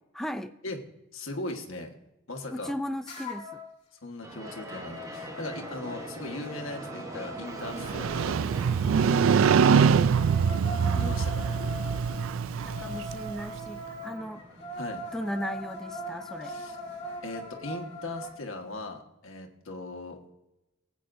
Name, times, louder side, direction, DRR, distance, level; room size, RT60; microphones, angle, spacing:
voice 1, 0.1-0.6 2.5-3.6 12.5-14.4 15.1-16.6, equal, ahead, 9 dB, 0.3 m, -36 dB
voice 2, 1.1-1.9 2.3-2.7 4.0-8.4 9.7-10.0 11.0-11.6 14.8-15.0 16.4-16.8 17.2-20.2, left 2 dB, 75° left, 3 dB, 1.4 m, -38 dB
sound 1, 3.1-3.7 4.1-8.3 9.8-18.3, equal, 35° left, 2.6 m, -41 dB
sound 2, 4.2-18.4, right 1 dB, 15° right, 0.9 m, -45 dB
Motorcycle, 7.7-13.6, right 6 dB, 70° right, 0.3 m, -24 dB
19.5 x 8.4 x 2.6 m, 0.93 s
head